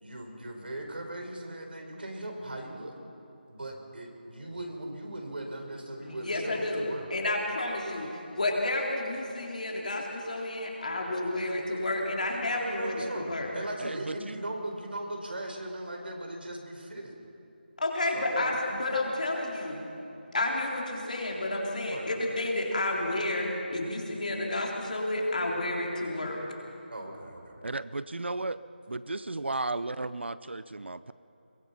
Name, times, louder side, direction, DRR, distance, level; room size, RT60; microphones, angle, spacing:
voice 1, 0.0-3.0 3.5-7.1 12.5-17.1 18.0-18.6 21.9-22.1 26.9-27.6, right 1 dB, 65° right, 3 dB, 4.3 m, -39 dB
voice 2, 6.0-8.1 8.3-13.5 17.8-19.8 20.3-26.4, left 2 dB, 45° left, -2 dB, 3.9 m, -31 dB
voice 3, 13.8-14.4 27.6-28.6 28.9-31.1, right 2 dB, 85° right, 15 dB, 0.7 m, -34 dB
22.5 x 20.0 x 5.8 m, 2.9 s
figure-of-eight pair, 175°, 6 cm